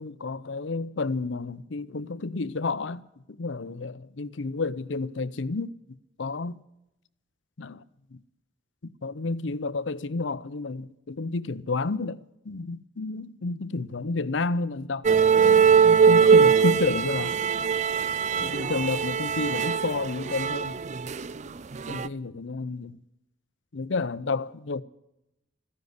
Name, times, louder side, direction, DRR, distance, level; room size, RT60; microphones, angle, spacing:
voice 1, 0.0-3.0 3.3-5.7 6.2-6.6 7.6-7.8 8.1-8.2 9.0-17.4 18.4-20.8 21.9-23.0 23.7-24.8, left 3 dB, 70° left, 0.7 m, -31 dB
sound 1, 15.0-21.5 21.7-22.1, right 6 dB, 40° right, 0.4 m, -21 dB
14.5 x 10.5 x 8.0 m
head